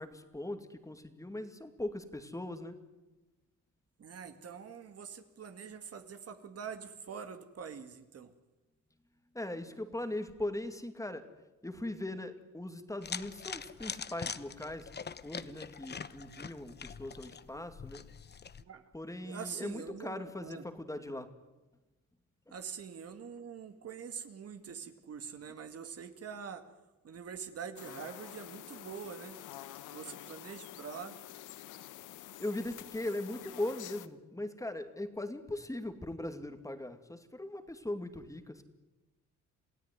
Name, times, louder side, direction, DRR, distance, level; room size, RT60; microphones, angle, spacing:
voice 1, 0.0-2.8 9.3-11.3 11.6-14.9 15.2-18.0 18.9-21.3 32.4-38.6, left 1 dB, 10° left, 8 dB, 2.4 m, -39 dB
voice 2, 4.0-8.3 17.5-17.7 18.6-18.9 19.2-20.6 22.5-26.7 27.0-29.4 29.9-31.2, right 7 dB, 50° right, 8 dB, 2.1 m, -45 dB
sound 1, 13.0-18.6, left 6 dB, 35° left, 1.0 m, -43 dB
sound 2, 27.8-34.1, left 13 dB, 85° left, 1.2 m, -48 dB
28.0 x 16.5 x 9.7 m, 1.1 s
cardioid pair, 90°, 30 cm